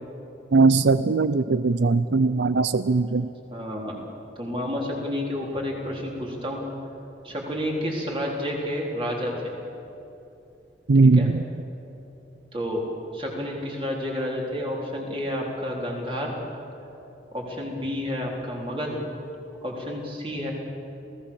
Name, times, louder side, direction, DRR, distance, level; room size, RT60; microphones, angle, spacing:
voice 1, 0.5-3.3 10.9-11.4, right 3 dB, 85° right, 14 dB, 0.5 m, -19 dB
voice 2, 3.5-4.0 4.4-6.7 7.2-9.5 11.1-11.3 12.5-12.8 13.1-16.3 17.3-19.0 19.6-20.5, left 1 dB, 30° right, -2 dB, 4.0 m, -30 dB
28.0 x 17.5 x 7.2 m, 2.9 s
head